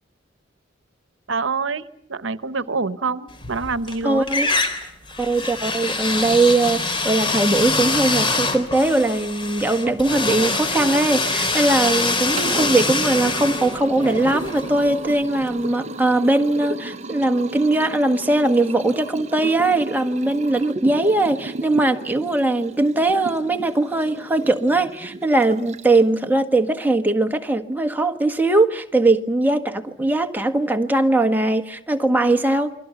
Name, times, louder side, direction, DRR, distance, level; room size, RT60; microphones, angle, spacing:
voice 1, 1.3-4.3, right 4 dB, 80° right, 1.0 m, -26 dB
sound 1, 3.4-4.0 4.3-15.1, left 3 dB, 25° left, 3.4 m, -24 dB
voice 2, 4.0-4.5 5.2-32.7, right 2 dB, 10° right, 1.5 m, -20 dB
Liquid, 12.1-26.2, right 1 dB, 35° right, 0.9 m, -34 dB
29.0 x 23.5 x 7.0 m
head